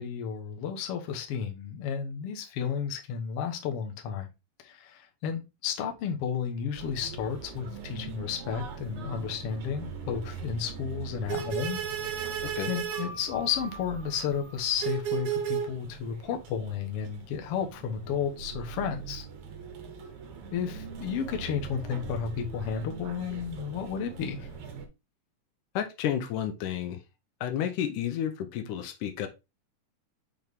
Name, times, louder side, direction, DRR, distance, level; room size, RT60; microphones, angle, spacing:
voice 1, 0.0-4.3 4.6-19.2 20.5-24.5, left 7 dB, 60° left, 1.7 m, -33 dB
sound 1, 6.7-24.8, right 8 dB, 60° right, 1.5 m, -38 dB
voice 2, 25.8-27.0 27.4-29.3, left 10 dB, 80° left, 2.3 m, -31 dB
6.3 x 4.4 x 3.5 m
omnidirectional pair, 3.7 m